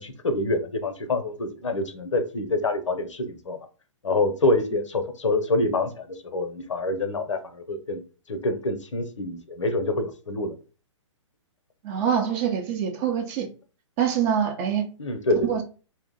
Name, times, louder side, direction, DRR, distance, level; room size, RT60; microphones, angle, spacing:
voice 1, 0.0-3.6 4.0-8.0 8.3-10.5 15.0-15.5, left 2 dB, 70° left, 0.7 m, -26 dB
voice 2, 11.8-13.5 14.0-14.9 15.4-15.6, right 8 dB, 30° right, 0.7 m, -25 dB
2.7 x 2.1 x 3.7 m
figure-of-eight pair, 120°, 16 cm